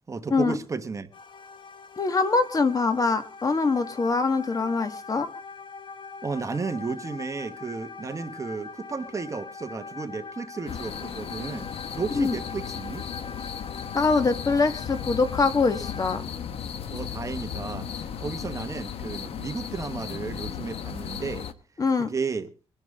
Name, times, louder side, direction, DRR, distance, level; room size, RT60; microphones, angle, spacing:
voice 1, 0.1-1.1 6.2-11.7 11.9-13.0 16.9-21.5 22.0-22.5, right 4 dB, 30° right, 1.2 m, -33 dB
sound 1, 1.1-16.2, left 4 dB, 55° left, 1.4 m, -42 dB
voice 2, 2.0-5.3 12.1-12.3 13.9-16.2 21.8-22.1, left 4 dB, 35° left, 1.7 m, -23 dB
sound 2, 10.7-21.5, left 8 dB, 75° left, 1.1 m, -35 dB
24.0 x 10.5 x 3.6 m
cardioid pair, 105°, 10 cm